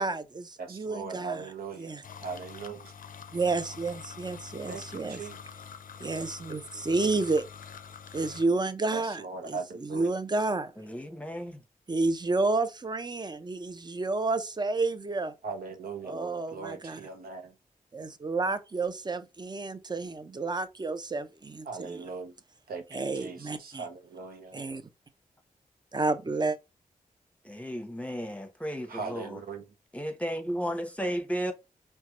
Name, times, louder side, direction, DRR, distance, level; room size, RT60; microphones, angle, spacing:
voice 1, 0.0-1.4 1.8-2.0 3.3-5.2 6.0-7.4 8.1-10.7 11.9-15.3 16.0-17.0 17.9-22.0 22.9-23.8 24.5-24.8 25.9-26.6, right 3 dB, 30° right, 0.6 m, -30 dB
voice 2, 0.6-2.9 4.7-5.4 8.9-10.1 15.4-17.5 21.6-22.3 22.7-24.6 28.9-29.7, right 5 dB, 80° right, 0.7 m, -39 dB
sound 1, 2.0-8.4, left 7 dB, 65° left, 0.5 m, -46 dB
voice 3, 10.8-11.6 27.4-29.4 29.9-31.5, equal, 10° left, 0.8 m, -34 dB
4.4 x 2.2 x 2.9 m
cardioid pair, 50°, 15 cm